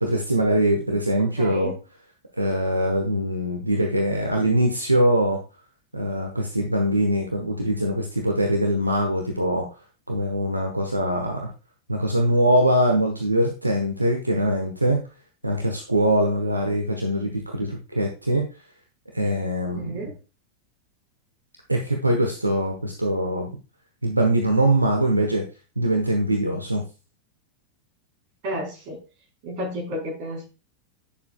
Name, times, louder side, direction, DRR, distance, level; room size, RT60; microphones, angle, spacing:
voice 1, 0.0-1.7 2.4-5.4 5.9-9.6 10.1-11.5 11.9-15.0 15.4-18.4 19.1-20.0 21.7-23.5 24.0-25.4 25.8-26.8, right 1 dB, 85° right, 2 dB, 1.1 m, -22 dB
voice 2, 1.2-1.8 19.7-20.1 28.4-29.0 29.4-30.5, equal, 45° right, 0 dB, 4.4 m, -32 dB
10.0 x 6.7 x 2.3 m, 0.31 s
figure-of-eight pair, 90°, 0 cm